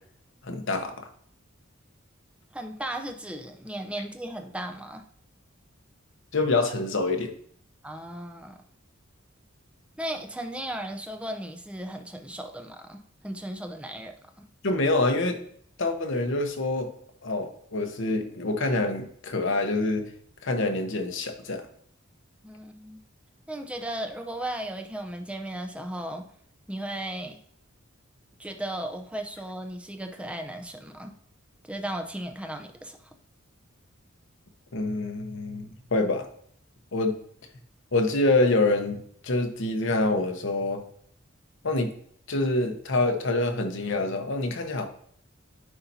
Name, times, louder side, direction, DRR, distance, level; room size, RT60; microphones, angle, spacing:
voice 1, 0.4-1.1 6.3-7.3 14.6-15.4 15.8-16.9 17.2-20.1 20.4-21.6 34.7-36.3 36.9-37.2 37.9-40.8 41.6-41.9 42.3-44.9, left 2 dB, 60° left, 5 dB, 0.9 m, -26 dB
voice 2, 2.5-5.0 7.8-8.6 10.0-14.5 22.4-23.0 23.5-26.3 26.7-27.4 28.4-31.1 31.6-33.1, right 1 dB, 5° right, 4 dB, 0.6 m, -36 dB
9.7 x 4.2 x 2.7 m, 0.62 s
head